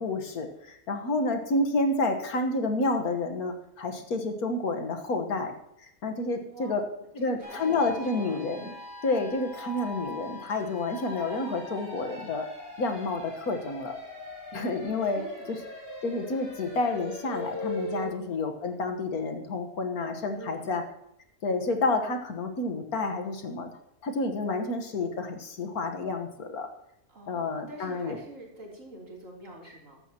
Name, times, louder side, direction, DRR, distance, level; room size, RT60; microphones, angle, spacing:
voice 1, 0.0-5.5 6.0-6.9 7.2-8.7 9.0-12.5 12.8-14.0 14.5-15.2 15.5-15.6 16.0-20.8 21.4-23.7 24.0-26.7 27.3-28.2, left 2 dB, 75° left, 6 dB, 1.8 m, -29 dB
voice 2, 6.4-6.7 7.2-8.4 15.0-15.5 18.0-18.3 20.3-20.8 27.1-30.0, right 1 dB, 55° right, -3 dB, 3.9 m, -46 dB
sound 1, 7.4-18.0, left 1 dB, 10° left, 5.9 m, -40 dB
15.0 x 12.0 x 2.9 m, 0.80 s
omnidirectional pair, 1.6 m